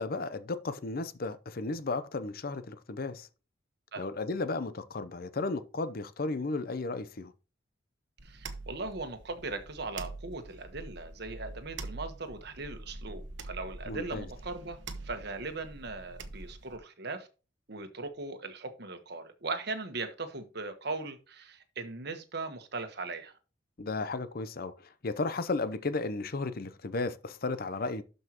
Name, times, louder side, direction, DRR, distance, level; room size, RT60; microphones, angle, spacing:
voice 1, 0.0-3.3 4.0-7.3 13.9-14.3 23.8-28.0, left 3 dB, 50° left, 0.7 m, -34 dB
voice 2, 8.2-14.8 15.0-17.3 17.7-23.3, right 3 dB, 60° right, 1.3 m, -39 dB
sound 1, 8.2-16.8, right 2 dB, 75° right, 0.9 m, -45 dB
12.0 x 5.5 x 3.0 m
head